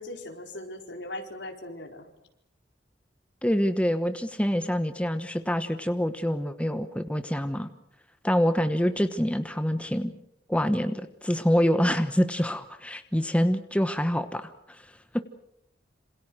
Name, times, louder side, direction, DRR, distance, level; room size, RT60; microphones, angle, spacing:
voice 1, 0.0-2.1, left 1 dB, 70° left, 3 dB, 4.6 m, -39 dB
voice 2, 3.4-7.7 8.2-10.1 10.5-14.8 15.1-15.2, equal, 5° left, 9 dB, 1.1 m, -26 dB
27.5 x 27.0 x 6.4 m, 0.77 s
head